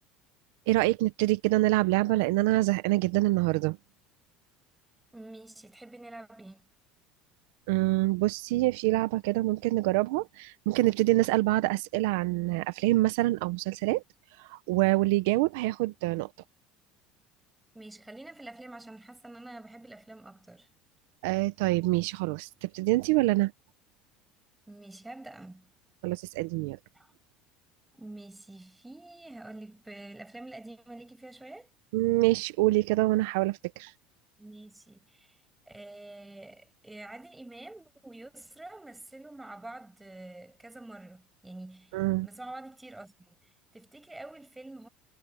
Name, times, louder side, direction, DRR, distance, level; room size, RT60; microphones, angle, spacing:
voice 1, 0.7-3.8 7.7-14.0 14.4-16.3 21.2-23.5 26.0-26.8 31.9-33.9 41.9-42.3, right 19 dB, 90° right, 0.9 m, -26 dB
voice 2, 5.1-6.7 17.7-20.7 24.7-25.7 26.9-27.1 27.9-31.7 34.4-44.9, right 2 dB, 5° right, 7.2 m, -47 dB
cardioid pair, 160°, 0 cm